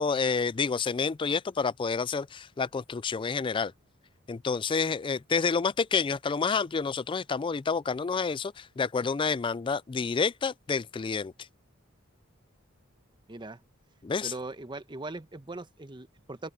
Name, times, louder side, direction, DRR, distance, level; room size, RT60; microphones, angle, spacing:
voice 1, 0.0-3.7 4.3-11.3 14.0-14.3, left 5 dB, 25° left, 0.3 m, -29 dB
voice 2, 13.3-13.6 14.2-16.5, right 2 dB, 20° right, 1.0 m, -40 dB
open air
head